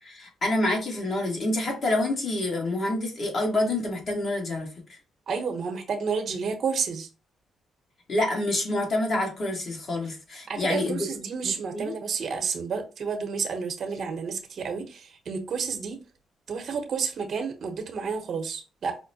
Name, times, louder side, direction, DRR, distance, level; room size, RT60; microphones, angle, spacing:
voice 1, 0.0-5.0 8.1-11.1 11.4-11.9, left 2 dB, 50° left, 0 dB, 1.4 m, -27 dB
voice 2, 5.3-7.1 10.5-16.0 16.5-19.0, right 5 dB, 55° right, 5 dB, 0.9 m, -30 dB
5.0 x 2.1 x 2.7 m, 0.33 s
cardioid pair, 90°, 0 cm